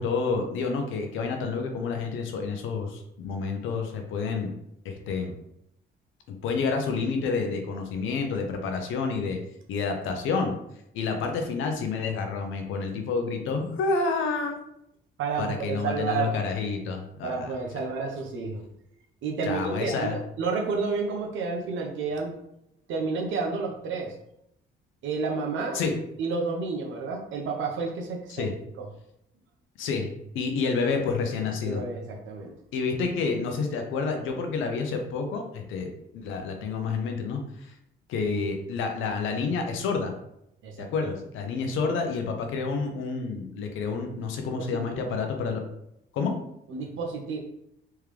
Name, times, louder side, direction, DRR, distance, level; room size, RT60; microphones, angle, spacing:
voice 1, 0.0-4.5 4.8-5.3 6.3-9.4 9.7-10.5 10.9-14.6 15.4-17.5 19.4-20.2 25.7-25.9 28.3-28.5 29.8-30.1 30.3-31.8 32.7-37.4 38.1-40.1 40.8-45.6 46.1-46.3, left 4 dB, 85° left, 4 dB, 0.8 m, -29 dB
voice 2, 15.2-16.3 17.2-18.6 19.2-22.3 22.9-24.1 25.0-25.8 26.2-28.4 28.8-28.9 31.6-32.5 40.6-40.9 44.7-44.8 46.7-47.4, right 4 dB, 75° right, 1 dB, 1.0 m, -30 dB
3.6 x 3.3 x 3.3 m, 0.78 s
cardioid pair, 90°, 20 cm